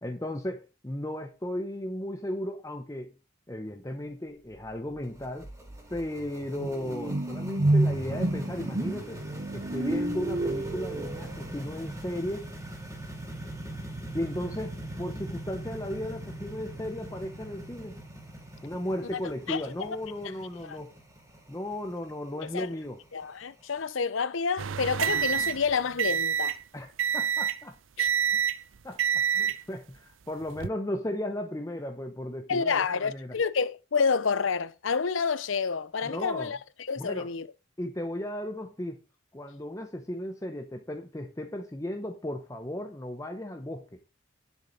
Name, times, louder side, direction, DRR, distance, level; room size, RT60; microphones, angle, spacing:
voice 1, 0.0-3.1 3.5-5.5 5.9-9.2 9.5-12.5 14.1-18.0 18.6-20.9 21.5-23.0 26.7-27.7 28.3-28.4 28.8-33.4 36.0-36.5 37.0-37.3 37.8-39.0 39.3-43.9, left 1 dB, 15° left, 0.8 m, -35 dB
sound 1, 5.0-23.8, right 1 dB, 15° right, 2.6 m, -42 dB
sound 2, 5.0-5.1 5.4-11.6, right 2 dB, 40° right, 0.8 m, -30 dB
voice 2, 19.5-20.0 20.7-20.8 22.4-22.7 23.1-26.6 28.0-28.1 32.5-37.5, left 5 dB, 80° left, 0.7 m, -29 dB
sound 3, 24.6-26.6 27.0-27.6 28.0-28.6 29.0-29.6 30.4-30.7, right 8 dB, 80° right, 0.5 m, -27 dB
10.0 x 7.3 x 4.0 m
head